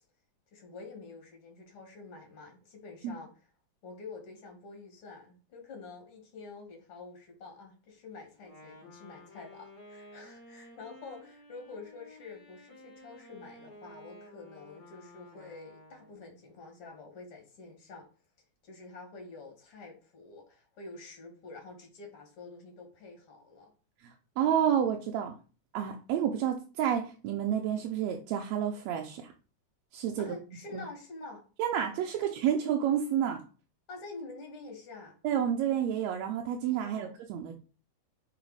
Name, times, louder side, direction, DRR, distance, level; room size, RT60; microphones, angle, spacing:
voice 1, 0.5-3.3 3.8-18.1 18.6-23.7 30.2-31.4 32.2-32.3 33.9-35.1 36.7-37.2, left 3 dB, 55° left, 3 dB, 2.7 m, -47 dB
Wind instrument woodwind instrument, 8.4-16.3, left 1 dB, 35° left, 2.5 m, -53 dB
voice 2, 24.0-25.3 25.7-29.3 29.9-30.3 30.7-30.8 31.6-33.4 35.2-37.5, right 9 dB, 80° right, 2 dB, 1.9 m, -30 dB
5.0 x 4.8 x 4.7 m, 0.36 s
omnidirectional pair, 3.4 m